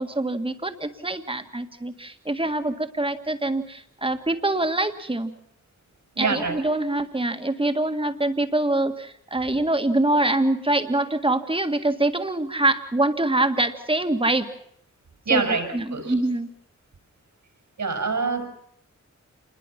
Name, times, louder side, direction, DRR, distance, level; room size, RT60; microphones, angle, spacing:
voice 1, 0.0-5.3 6.2-14.5 15.3-15.4 15.7-16.5, right 2 dB, 20° right, 8 dB, 1.8 m, -24 dB
voice 2, 6.2-6.6 15.3-16.1 17.8-18.5, right 4 dB, 80° right, 5 dB, 5.9 m, -25 dB
28.0 x 21.0 x 5.9 m, 0.70 s
wide cardioid pair, 125°, 29 cm